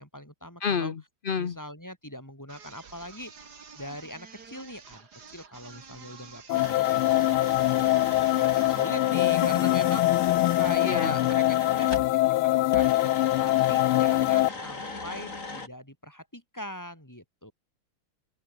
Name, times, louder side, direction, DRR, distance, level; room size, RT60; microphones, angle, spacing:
voice 1, 0.0-0.9 1.4-3.3 3.8-12.9 13.4-17.5, equal, 10° left, 7.4 m, -41 dB
voice 2, 0.6-1.6 10.8-11.2, left 6 dB, 60° left, 0.5 m, -29 dB
sound 1, 2.5-9.0, right 5 dB, 50° right, 2.9 m, -49 dB
sound 2, 6.5-14.5, left 17 dB, 85° left, 1.5 m, -23 dB
sound 3, 6.5-12.1 12.7-15.7, left 3 dB, 35° left, 3.8 m, -38 dB
open air
omnidirectional pair, 2.3 m